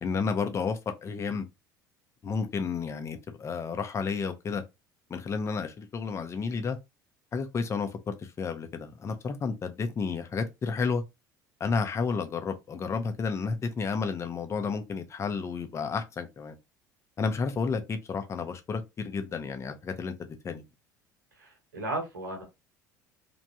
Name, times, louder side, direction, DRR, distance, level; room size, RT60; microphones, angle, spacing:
voice 1, 0.0-1.5 2.2-4.6 5.1-6.8 7.3-11.0 11.6-16.6 17.2-20.6, left 5 dB, 25° left, 0.7 m, -31 dB
voice 2, 21.4-22.4, right 2 dB, 75° right, 1.2 m, -35 dB
3.2 x 2.6 x 2.7 m
figure-of-eight pair, 65°, 10 cm